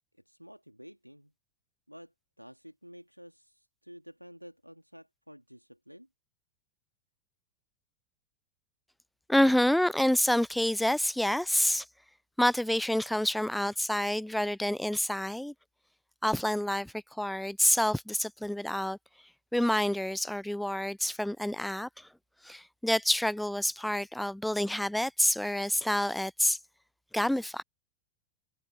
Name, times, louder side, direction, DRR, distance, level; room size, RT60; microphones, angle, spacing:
voice 1, 0.3-1.3 1.9-6.1, equal, 90° right, 2.3 m, -51 dB
voice 2, 9.3-11.9 12.4-15.5 16.2-19.0 19.5-22.1 22.4-26.6 27.1-27.6, left 1 dB, ahead, 0.3 m, -28 dB
figure-of-eight pair, 90°, 0 cm